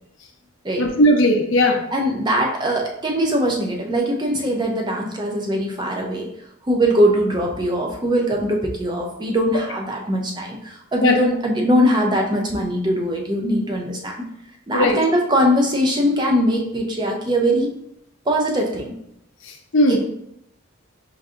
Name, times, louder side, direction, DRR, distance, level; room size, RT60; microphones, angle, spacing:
voice 1, 0.8-1.8 11.0-11.1 14.7-15.0 19.4-20.0, left 1 dB, 70° left, 3 dB, 0.6 m, -17 dB
voice 2, 1.9-6.3 6.6-14.1 14.7-17.7 18.3-18.9 19.9-20.0, equal, 20° right, 0 dB, 0.4 m, -21 dB
4.7 x 2.6 x 2.4 m, 0.76 s
head